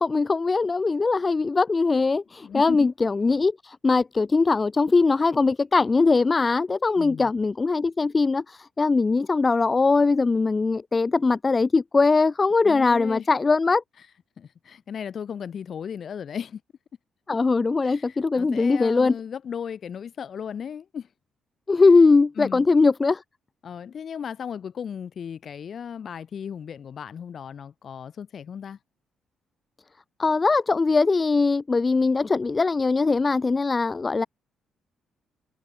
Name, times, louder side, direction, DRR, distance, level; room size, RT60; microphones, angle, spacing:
voice 1, 0.0-13.8 17.3-19.1 21.7-23.2 30.2-34.3, left 4 dB, 25° left, 1.0 m, -21 dB
voice 2, 2.4-2.9 7.0-7.3 12.6-13.3 14.4-16.6 17.8-21.1 22.4-22.6 23.6-28.8, left 7 dB, 55° left, 7.8 m, -36 dB
cardioid pair, 90°, 0 cm